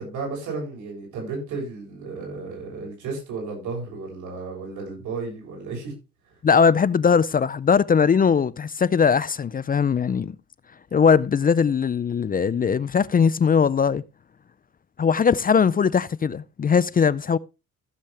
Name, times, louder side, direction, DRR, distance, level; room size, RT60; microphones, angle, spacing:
voice 1, 0.0-5.9, right 4 dB, 85° right, 7.7 m, -33 dB
voice 2, 6.4-10.4 10.9-14.0 15.0-17.4, left 6 dB, 30° left, 0.4 m, -20 dB
15.0 x 7.3 x 3.4 m
cardioid pair, 90°, 30 cm